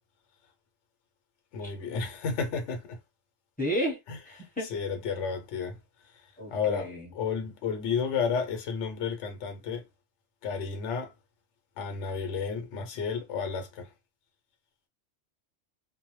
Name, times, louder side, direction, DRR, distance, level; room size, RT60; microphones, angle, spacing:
voice 1, 1.5-3.0 4.1-4.2 4.6-5.8 6.1-9.9 10.4-11.1 11.8-13.9, left 6 dB, 75° left, 1.0 m, -32 dB
voice 2, 3.6-4.0 4.3-4.7 6.4-7.1, equal, 10° left, 0.9 m, -32 dB
2.2 x 2.1 x 3.0 m
omnidirectional pair, 1.2 m